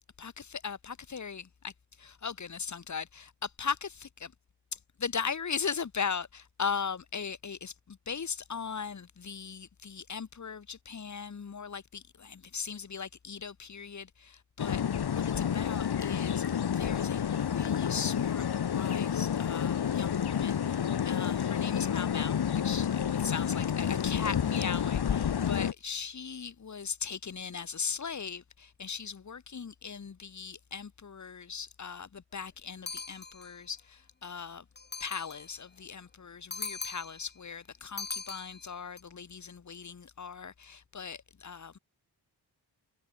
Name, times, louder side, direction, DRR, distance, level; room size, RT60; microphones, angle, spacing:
voice 1, 0.2-1.7 2.0-4.3 4.7-34.6 35.0-41.8, left 6 dB, 40° left, 1.3 m, -39 dB
sound 1, 14.6-25.7, left 8 dB, 60° left, 1.1 m, -30 dB
sound 2, 32.9-33.6 34.8-35.5 36.5-37.3 38.0-39.0, left 4 dB, 25° left, 1.1 m, -40 dB
wide cardioid pair, 120°, 44 cm